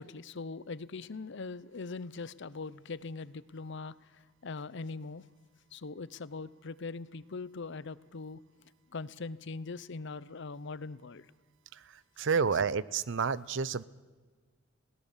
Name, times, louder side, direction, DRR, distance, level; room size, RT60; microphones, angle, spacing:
voice 1, 0.0-3.9 4.4-5.2 5.7-8.4 8.9-11.3 12.4-12.5, left 4 dB, 60° left, 18 dB, 0.7 m, -41 dB
voice 2, 12.2-13.8, right 5 dB, 65° right, 19 dB, 0.6 m, -29 dB
21.5 x 17.5 x 7.3 m, 1.4 s
head